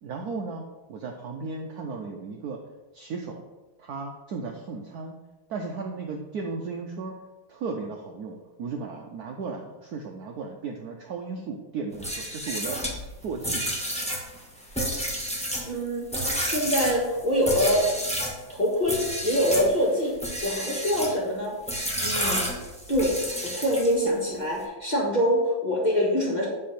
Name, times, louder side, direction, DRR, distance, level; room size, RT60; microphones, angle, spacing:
voice 1, 0.0-2.6 2.9-3.4 3.8-5.1 5.5-7.1 7.5-12.8 13.2-13.6, right 4 dB, 70° right, 2 dB, 0.9 m, -35 dB
sound 1, 11.9-18.4 18.8-19.7 20.1-21.2 21.7-24.1, equal, 5° left, 0.8 m, -30 dB
voice 2, 15.6-16.0 16.4-17.9 18.5-20.1 20.4-21.5 22.0-22.5 22.9-26.5, equal, 25° left, -4 dB, 1.6 m, -24 dB
7.7 x 3.6 x 5.8 m, 1.1 s
omnidirectional pair, 2.2 m